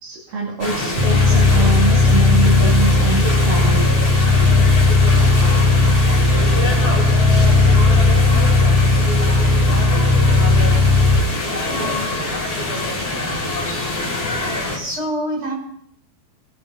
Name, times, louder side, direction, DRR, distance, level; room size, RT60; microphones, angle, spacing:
voice 1, 0.0-3.9, right 3 dB, 75° right, -2 dB, 4.1 m, -24 dB
sound 1, 0.6-14.8, left 2 dB, 15° left, 2.9 m, -24 dB
sound 2, 1.0-11.2, left 3 dB, 55° right, 0.6 m, -15 dB
voice 2, 11.7-12.1 14.7-15.5, equal, 35° right, -1 dB, 5.8 m, -28 dB
20.5 x 8.1 x 5.7 m, 0.69 s
omnidirectional pair, 4.2 m